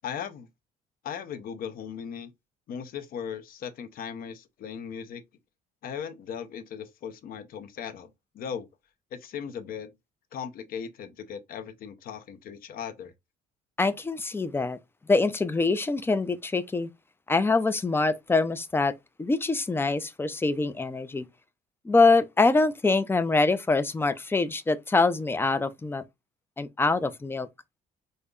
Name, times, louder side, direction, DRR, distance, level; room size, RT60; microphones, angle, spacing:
voice 1, 0.0-0.5 1.0-2.3 2.7-5.2 5.8-8.1 8.3-8.7 9.1-9.9 10.3-13.1, left 7 dB, 60° left, 0.6 m, -37 dB
voice 2, 13.8-14.8 15.1-16.9 17.3-18.9 19.2-21.2 21.8-26.0 26.6-27.5, left 3 dB, 15° left, 0.4 m, -24 dB
5.2 x 2.1 x 2.3 m
cardioid pair, 110°, 17 cm